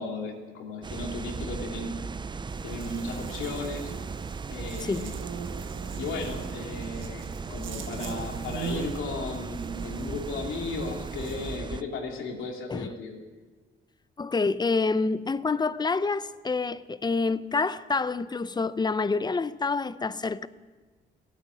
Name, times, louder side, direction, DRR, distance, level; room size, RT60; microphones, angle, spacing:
voice 1, 0.0-2.0 2.6-3.9 4.5-5.1 6.0-13.2, left 3 dB, 85° left, 2.9 m, -35 dB
sound 1, 0.8-11.8, right 5 dB, 25° right, 0.5 m, -37 dB
Buzz, 2.5-11.6, right 6 dB, 75° right, 1.5 m, -42 dB
voice 2, 14.2-20.5, left 4 dB, 20° left, 0.6 m, -27 dB
16.5 x 9.0 x 9.5 m
cardioid pair, 90°, 20 cm